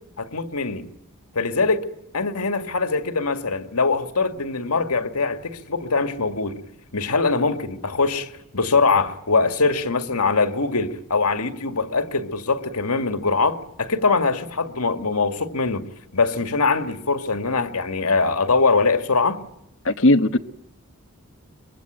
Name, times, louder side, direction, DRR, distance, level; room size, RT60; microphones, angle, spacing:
voice 1, 0.2-0.9 1.3-1.9 2.1-6.6 6.9-15.9 16.1-19.4, left 4 dB, 90° left, 2.1 m, -22 dB
voice 2, 19.8-20.4, left 1 dB, 60° left, 1.1 m, -17 dB
24.5 x 22.5 x 9.0 m
head